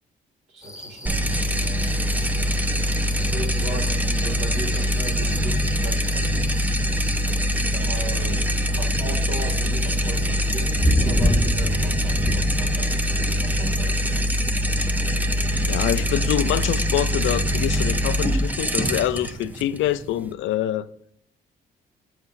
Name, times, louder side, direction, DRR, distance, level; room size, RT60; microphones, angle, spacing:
voice 1, 0.5-1.9 3.1-6.5 7.6-14.1, right 2 dB, 80° right, 2.2 m, -37 dB
sound 1, 0.6-16.7, left 1 dB, 15° left, 0.9 m, -32 dB
sound 2, 1.1-20.3, equal, 10° right, 0.6 m, -23 dB
voice 2, 15.6-20.9, left 12 dB, 80° left, 0.5 m, -25 dB
7.9 x 7.3 x 2.6 m
cardioid pair, 90°, 20 cm